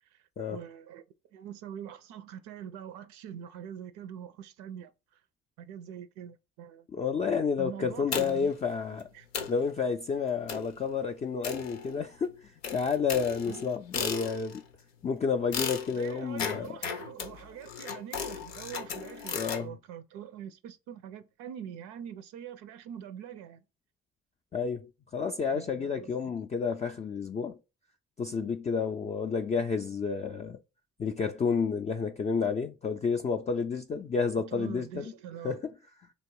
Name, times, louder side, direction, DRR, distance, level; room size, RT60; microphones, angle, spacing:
voice 1, 0.1-1.0 1.3-5.2 5.6-6.9 7.6-8.5 9.1-9.3 13.5-13.7 15.9-23.6 25.5-26.4 34.5-35.6, right 9 dB, 65° right, 0.5 m, -44 dB
voice 2, 6.9-9.0 9.5-14.6 15.0-16.7 19.3-19.7 24.5-27.6 28.2-30.6 31.0-35.0 35.4-35.6, left 5 dB, 25° left, 0.4 m, -30 dB
sound 1, 8.1-8.6 9.0-9.1 9.3-9.7 10.5-10.8 11.4-12.2 12.6-14.7 15.5-19.7, left 7 dB, 85° left, 0.6 m, -36 dB
3.0 x 2.9 x 4.5 m
hypercardioid pair, 50°, 30 cm